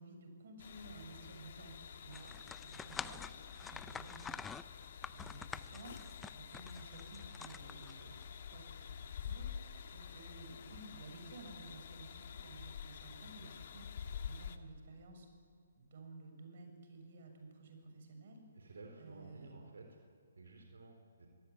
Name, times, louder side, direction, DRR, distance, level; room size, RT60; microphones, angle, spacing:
voice 1, 0.0-1.7 2.0-8.0 8.5-15.3 15.7-19.5, right 2 dB, 50° right, 4 dB, 6.7 m, -54 dB
sound 1, 0.6-14.6, left 7 dB, 50° left, 1.6 m, -48 dB
sound 2, 2.1-8.2, left 6 dB, 10° left, 0.5 m, -47 dB
voice 2, 7.6-8.2 18.6-19.8 20.4-21.3, right 3 dB, 70° right, 3 dB, 3.9 m, -55 dB
24.0 x 18.0 x 9.7 m, 2.3 s
figure-of-eight pair, 140°, 0 cm